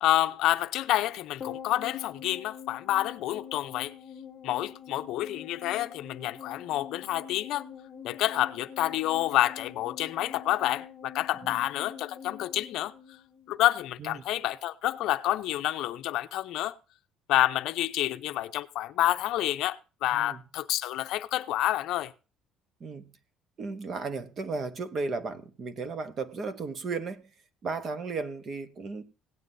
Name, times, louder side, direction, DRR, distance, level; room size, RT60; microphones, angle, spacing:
voice 1, 0.0-3.9 4.4-7.7 8.0-12.9 13.5-16.7 17.3-22.1, left 14 dB, 60° left, 0.6 m, -28 dB
sound 1, 1.4-13.9 14.2-14.3, left 8 dB, 30° left, 1.1 m, -46 dB
voice 2, 23.6-27.3 27.6-29.0, right 4 dB, 30° right, 0.9 m, -35 dB
17.0 x 9.4 x 2.6 m
cardioid pair, 175°, 0 cm